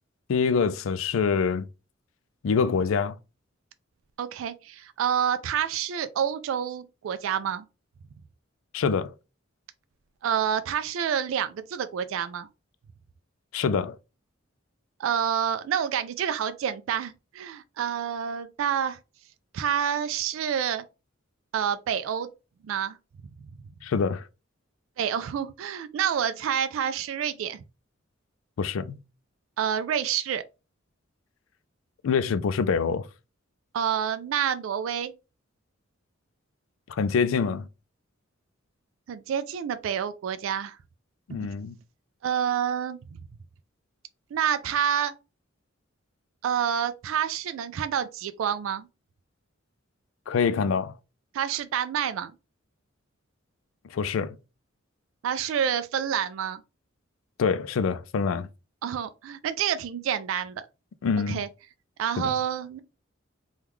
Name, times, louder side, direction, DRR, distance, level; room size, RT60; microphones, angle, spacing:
voice 1, 0.3-1.6 2.4-3.1 8.7-9.1 13.5-14.0 23.8-24.2 28.6-29.0 32.0-33.0 36.9-37.7 41.3-41.8 50.3-51.0 53.9-54.4 57.4-58.5 61.0-61.4 62.2-62.3, left 5 dB, 90° left, 0.4 m, -25 dB
voice 2, 4.2-7.6 10.2-12.5 15.0-19.0 19.5-20.8 21.5-22.3 22.6-23.0 25.0-27.6 29.6-30.4 33.7-35.1 39.1-40.8 41.3-41.5 42.2-43.2 44.3-45.1 46.4-48.9 51.3-52.3 55.2-56.6 58.8-60.6 61.3-61.5 62.0-62.8, right 8 dB, 80° right, 0.3 m, -28 dB
3.5 x 2.3 x 3.0 m
head